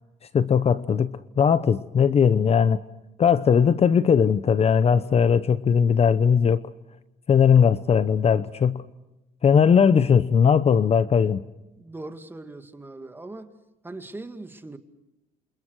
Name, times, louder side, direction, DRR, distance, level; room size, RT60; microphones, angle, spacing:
voice 1, 0.3-2.8 3.2-6.6 7.3-8.8 9.4-11.4, left 7 dB, 35° left, 0.9 m, -19 dB
voice 2, 11.7-13.6 13.8-14.8, right 2 dB, 10° right, 2.2 m, -40 dB
29.0 x 28.0 x 4.8 m
cardioid pair, 110°, 17 cm